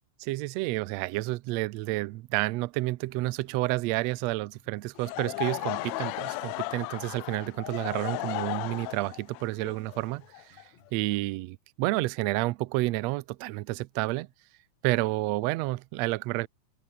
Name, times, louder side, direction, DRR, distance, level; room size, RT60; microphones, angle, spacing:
voice 1, 0.2-10.6 10.9-14.3 14.8-16.5, right 19 dB, 80° right, 1.6 m, -30 dB
sound 1, 3.0-11.0, left 3 dB, 45° left, 8.3 m, -63 dB
Laughter / Crowd, 5.0-10.9, left 20 dB, 80° left, 1.6 m, -35 dB
open air
omnidirectional pair, 3.6 m